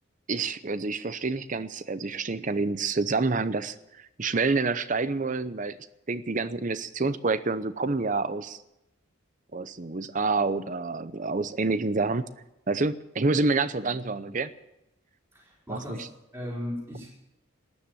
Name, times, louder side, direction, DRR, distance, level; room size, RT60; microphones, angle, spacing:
voice 1, 0.3-3.7 4.2-5.8 6.1-8.6 9.5-12.2 12.7-14.5 15.7-16.1, right 3 dB, 40° right, 14 dB, 0.7 m, -28 dB
voice 2, 15.3-16.1 16.3-17.2, left 1 dB, 10° right, -5 dB, 5.0 m, -36 dB
13.0 x 10.5 x 9.6 m, 0.91 s
head